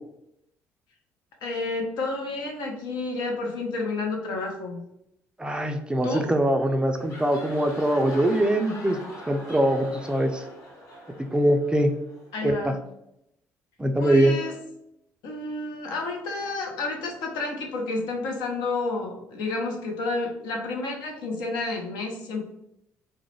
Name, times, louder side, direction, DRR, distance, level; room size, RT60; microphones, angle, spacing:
voice 1, 1.4-4.8 6.0-6.3 12.3-12.8 14.0-14.6 15.2-22.5, left 3 dB, 75° left, 1 dB, 0.6 m, -30 dB
voice 2, 5.4-9.0 9.3-10.4 11.3-11.9 12.4-12.7 13.8-14.4, right 1 dB, 10° right, 5 dB, 0.4 m, -22 dB
sound 1, 6.8-12.4, left 1 dB, 45° left, 1.0 m, -42 dB
2.3 x 2.0 x 3.1 m, 0.80 s
hypercardioid pair, 60°, 7 cm